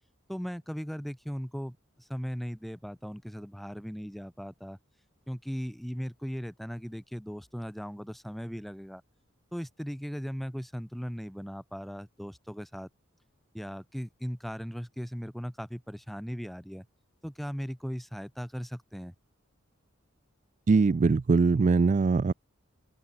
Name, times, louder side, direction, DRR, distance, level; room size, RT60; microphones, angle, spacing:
voice 1, 0.3-4.8 5.3-9.0 9.5-12.9 13.5-16.9 17.2-19.1, equal, ahead, 1.4 m, -38 dB
voice 2, 20.7-22.3, right 4 dB, 35° right, 0.3 m, -22 dB
head